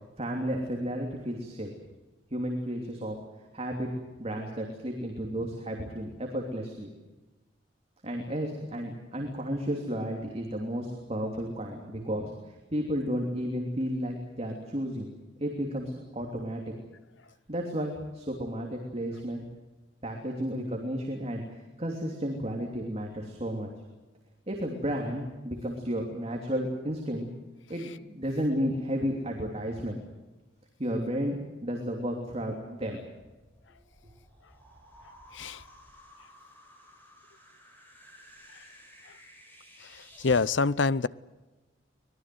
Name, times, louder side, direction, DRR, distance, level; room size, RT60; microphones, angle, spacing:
voice 1, 0.2-1.7 2.3-3.2 3.5-3.9 4.2-6.9 8.0-15.1 15.4-16.6 17.5-19.4 20.0-23.7 24.5-27.3 27.7-30.0 30.8-33.0, equal, 35° right, 1 dB, 3.1 m, -32 dB
sound 1, 33.1-40.5, equal, 10° left, 6.8 m, -54 dB
voice 2, 35.3-35.6 38.5-38.6 39.1-39.2 39.8-41.1, left 4 dB, 70° left, 18 dB, 0.7 m, -27 dB
25.0 x 20.0 x 7.8 m, 1.2 s
head